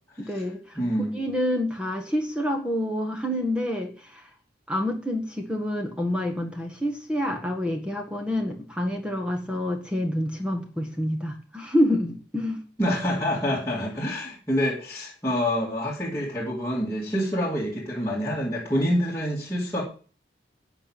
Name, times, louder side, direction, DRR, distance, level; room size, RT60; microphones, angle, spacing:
voice 1, 0.2-0.8 1.1-4.3 4.7-12.6, left 1 dB, 5° right, 3 dB, 1.7 m, -27 dB
voice 2, 0.8-1.2 12.8-19.8, equal, 15° left, -5 dB, 2.5 m, -27 dB
11.5 x 6.0 x 9.0 m, 0.40 s
head